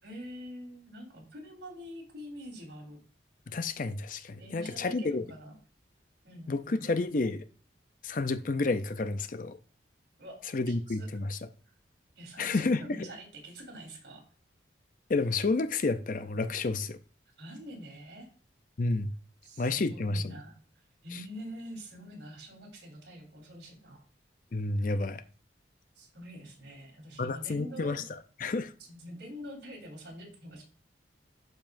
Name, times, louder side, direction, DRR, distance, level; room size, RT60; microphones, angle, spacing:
voice 1, 0.0-3.0 4.4-5.5 6.2-6.9 10.2-10.4 10.7-11.1 12.2-14.3 17.4-18.3 19.4-24.0 26.0-28.0 28.8-30.6, equal, 70° right, 3.8 m, -45 dB
voice 2, 3.5-5.2 6.5-7.4 8.0-9.6 10.5-11.4 12.4-12.8 15.1-17.0 18.8-19.1 19.6-20.4 24.5-25.2 27.2-28.0 28.4-28.7, left 3 dB, 45° left, 0.5 m, -30 dB
12.0 x 5.4 x 2.6 m
head